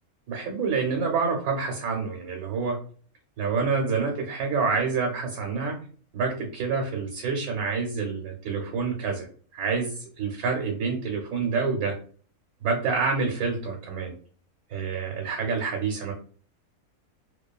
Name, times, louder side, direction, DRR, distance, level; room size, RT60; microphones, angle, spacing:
voice 1, 0.3-2.8 3.4-5.8 6.1-9.3 9.5-12.0 12.6-14.1 14.7-16.1, right 5 dB, 90° right, 1 dB, 1.2 m, -27 dB
2.6 x 2.3 x 2.2 m, 0.44 s
omnidirectional pair, 1.5 m